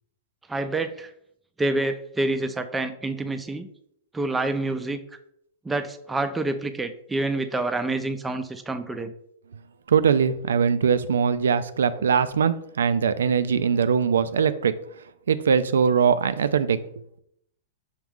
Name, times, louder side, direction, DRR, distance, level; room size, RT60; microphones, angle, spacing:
voice 1, 0.5-1.1 1.6-3.7 4.1-5.0 5.6-9.1 12.0-12.1, right 2 dB, 10° right, 8 dB, 0.4 m, -27 dB
voice 2, 9.9-14.7 15.3-16.8, right 6 dB, 85° right, 13 dB, 0.3 m, -21 dB
6.2 x 2.4 x 3.5 m, 0.72 s
hypercardioid pair, 120°, 0 cm